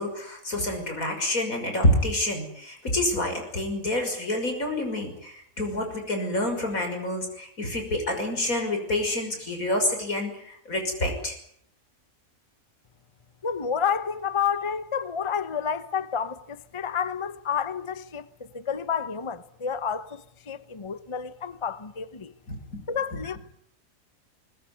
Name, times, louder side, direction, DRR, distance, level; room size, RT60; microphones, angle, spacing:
voice 1, 0.0-11.4 22.5-22.8 23.1-23.2, left 1 dB, 90° left, 6.5 m, -28 dB
voice 2, 13.4-18.3 18.5-22.3 22.9-23.4, left 7 dB, 25° left, 0.9 m, -30 dB
21.0 x 20.5 x 9.7 m
omnidirectional pair, 1.4 m